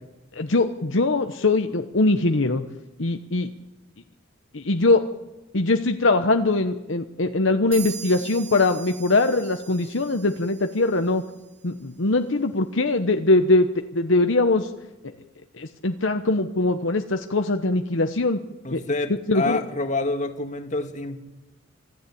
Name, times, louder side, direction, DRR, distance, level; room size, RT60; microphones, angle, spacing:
voice 1, 0.4-2.6 3.0-3.5 4.5-5.0 5.5-11.2 11.6-13.7 13.9-14.7 15.0-15.1 15.6-18.4 18.7-18.8 19.3-19.6, left 2 dB, 65° left, 6 dB, 1.0 m, -22 dB
sound 1, 7.7-11.3, right 8 dB, 45° right, 7.1 m, -41 dB
voice 2, 18.6-21.2, left 2 dB, 35° left, 6 dB, 2.0 m, -27 dB
26.0 x 14.5 x 8.6 m, 1.0 s
head